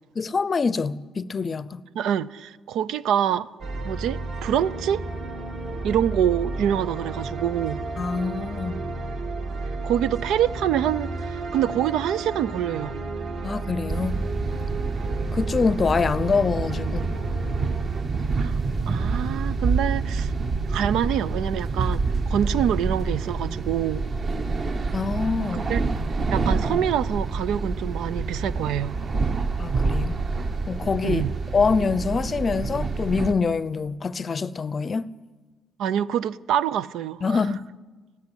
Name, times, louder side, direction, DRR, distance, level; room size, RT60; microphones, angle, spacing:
voice 1, 0.2-1.8 8.0-8.8 13.4-14.2 15.3-17.1 24.9-25.7 29.6-30.2 30.7-31.2 31.5-35.1 37.2-37.7, left 5 dB, 30° left, 0.6 m, -25 dB
voice 2, 1.9-3.5 3.8-5.0 5.8-7.8 9.8-13.0 18.3-18.6 18.9-20.3 20.7-24.0 25.5-25.8 26.3-29.0 31.0-31.3 35.8-37.4, right 10 dB, 90° right, 0.6 m, -26 dB
sound 1, 3.6-18.0, right 2 dB, 60° right, 2.5 m, -32 dB
sound 2, 13.9-33.3, right 4 dB, 40° right, 1.1 m, -27 dB
19.0 x 15.0 x 9.8 m
cardioid pair, 130°, 0 cm